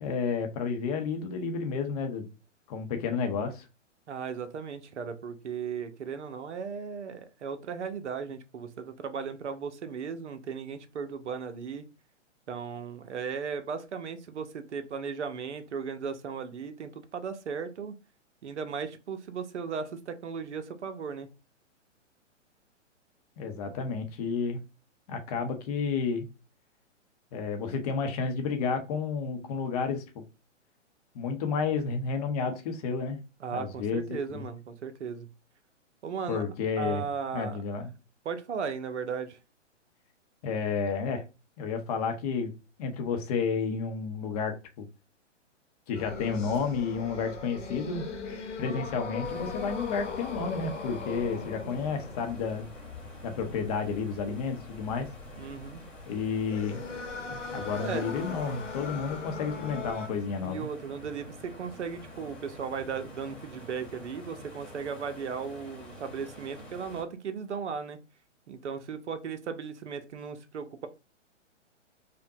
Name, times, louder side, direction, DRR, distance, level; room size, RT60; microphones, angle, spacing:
voice 1, 0.0-2.3 2.7-3.6 23.4-24.6 25.1-26.3 27.3-30.2 31.1-33.2 33.5-34.4 36.3-37.0 37.3-37.9 40.4-41.2 41.6-42.5 42.8-44.9 45.9-48.0 48.6-52.7 53.2-55.1 56.1-56.8 57.3-60.7, left 5 dB, 30° left, 5 dB, 0.7 m, -31 dB
voice 2, 4.1-11.9 12.5-17.9 18.4-21.3 33.4-35.3 36.0-36.5 36.8-37.6 38.2-39.4 55.4-55.8 57.8-58.1 60.4-68.0 68.5-70.9, right 6 dB, 65° right, 10 dB, 0.7 m, -36 dB
sound 1, 45.9-60.1, left 4 dB, 75° left, 1.2 m, -40 dB
sound 2, 49.2-67.0, equal, 5° left, 1.3 m, -48 dB
5.1 x 2.2 x 2.7 m, 0.29 s
figure-of-eight pair, 125°, 37 cm